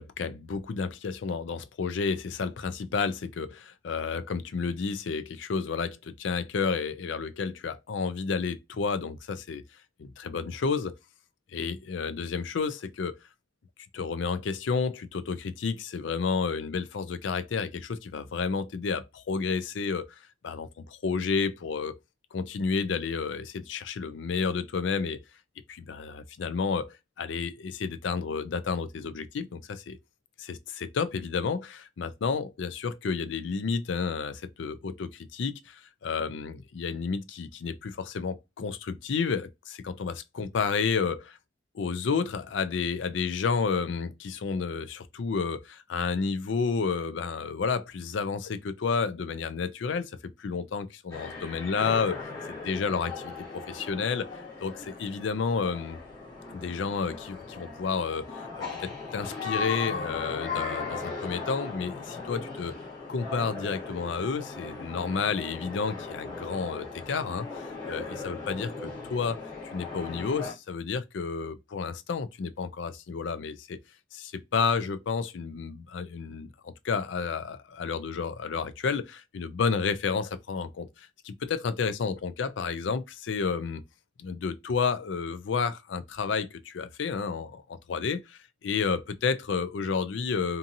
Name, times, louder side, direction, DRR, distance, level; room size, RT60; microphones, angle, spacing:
voice 1, 0.0-9.6 10.0-11.0 11.5-13.2 13.9-20.1 20.4-20.7 21.0-22.0 22.3-25.2 25.7-30.0 30.4-41.4 41.7-52.2 52.5-53.1 53.5-56.0 56.5-62.7 63.1-68.7 69.0-69.4 69.7-73.8 74.1-83.8 84.2-90.6, left 5 dB, 75° left, 0.4 m, -31 dB
sound 1, 51.1-70.5, left 4 dB, 20° left, 1.1 m, -38 dB
2.6 x 2.6 x 2.6 m
head